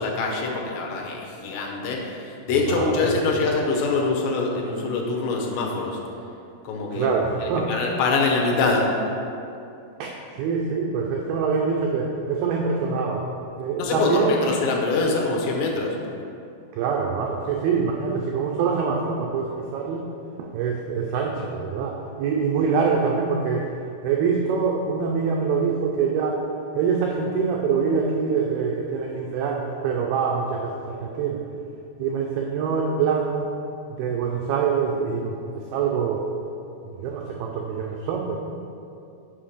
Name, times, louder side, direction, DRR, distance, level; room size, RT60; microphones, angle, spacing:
voice 1, 0.0-6.0 6.6-8.9 13.8-16.0, left 3 dB, 75° left, -1 dB, 3.0 m, -24 dB
voice 2, 2.7-3.3 6.9-7.7 10.0-13.3 13.6-14.5 16.8-20.1 20.4-23.7 24.0-26.4 26.7-31.4 32.0-33.5 34.0-35.4 35.7-36.3 36.9-38.4, right 5 dB, 90° right, 0 dB, 2.2 m, -25 dB
7.4 x 5.6 x 5.0 m, 2.6 s
omnidirectional pair, 5.1 m